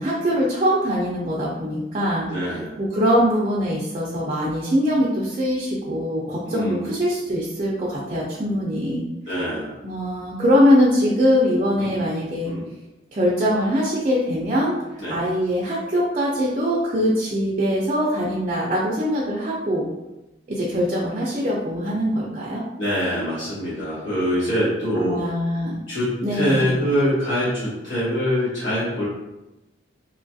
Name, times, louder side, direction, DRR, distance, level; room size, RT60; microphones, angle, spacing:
voice 1, 0.0-2.3 2.8-9.1 9.8-12.5 13.1-14.7 15.1-19.9 20.5-22.6 24.9-25.8 26.2-26.7, equal, 35° right, -6 dB, 0.4 m, -22 dB
voice 2, 2.3-2.8 6.5-7.0 9.3-9.8 11.8-12.1 12.4-12.6 15.0-15.2 22.8-25.3 25.9-29.1, equal, 85° left, -10 dB, 1.0 m, -24 dB
3.0 x 2.3 x 2.6 m, 0.98 s
head